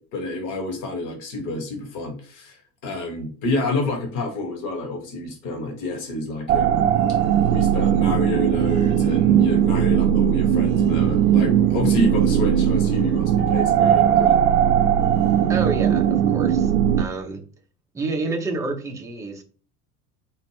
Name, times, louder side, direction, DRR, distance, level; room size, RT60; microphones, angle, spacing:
voice 1, 0.0-7.2 7.5-14.4, left 2 dB, 40° left, 3 dB, 1.2 m, -29 dB
sound 1, 6.5-17.0, right 9 dB, 60° right, 0.5 m, -19 dB
voice 2, 15.5-16.7 17.0-17.4 17.9-19.4, right 3 dB, 5° right, 3 dB, 0.4 m, -29 dB
4.3 x 2.4 x 3.3 m, 0.40 s
figure-of-eight pair, 70°, 48 cm